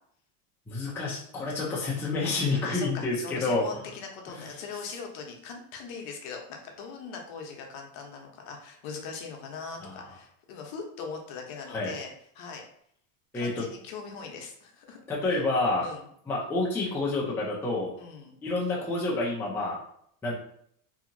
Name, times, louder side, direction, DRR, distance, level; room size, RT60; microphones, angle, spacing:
voice 1, 0.7-3.6 4.3-4.5 9.8-9.9 11.7-11.9 13.3-13.6 15.1-15.9 16.3-17.9 18.4-19.8 20.2-20.3, left 3 dB, 5° left, -5 dB, 0.4 m, -28 dB
voice 2, 2.6-12.6 13.3-15.0 15.3-15.4 15.8-16.0 18.0-18.4, left 5 dB, 55° left, 2 dB, 0.8 m, -40 dB
2.8 x 2.7 x 2.5 m, 0.67 s
supercardioid pair, 140°, 39 cm